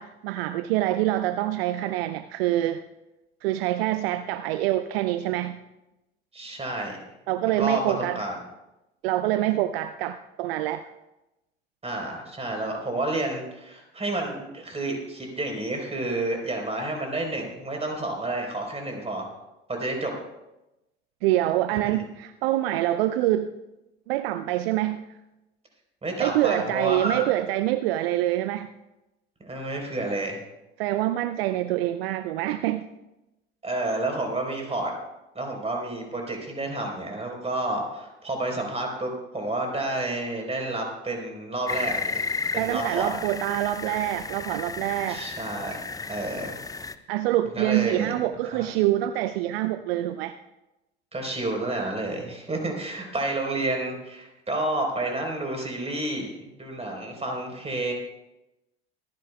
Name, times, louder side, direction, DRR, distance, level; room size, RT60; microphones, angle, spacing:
voice 1, 0.0-2.8 3.4-5.6 7.3-8.2 9.0-10.8 21.2-23.5 24.1-25.0 26.2-28.7 30.8-32.9 42.6-45.2 47.1-50.3, right 14 dB, 65° right, 11 dB, 0.5 m, -25 dB
voice 2, 6.3-7.0 7.6-8.4 11.8-19.3 19.7-20.1 21.8-22.0 26.0-27.2 29.4-30.4 33.6-34.9 35.3-42.2 42.5-43.1 45.1-45.8 46.1-46.6 47.6-48.1 48.5-48.6 51.1-57.9, right 2 dB, 20° right, 2 dB, 4.1 m, -30 dB
sound 1, 41.7-46.9, left 4 dB, 10° left, 0.5 m, -33 dB
25.0 x 10.5 x 2.3 m, 0.95 s
figure-of-eight pair, 65°, 32 cm